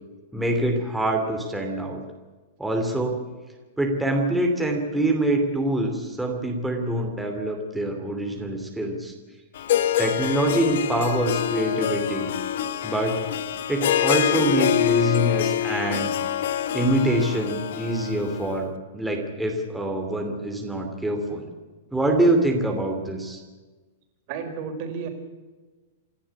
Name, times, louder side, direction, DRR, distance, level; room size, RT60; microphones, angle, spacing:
voice 1, 0.3-2.0 2.6-3.2 3.8-9.1 10.0-12.3 12.8-13.2 13.7-16.1 16.7-21.5 21.9-23.4, right 1 dB, 5° right, 1 dB, 2.8 m, -25 dB
Harp, 9.6-18.6, left 11 dB, 65° left, 1.4 m, -26 dB
voice 2, 24.3-25.1, right 6 dB, 40° right, 5 dB, 4.6 m, -32 dB
28.0 x 11.5 x 8.4 m, 1.3 s
supercardioid pair, 165°, 0 cm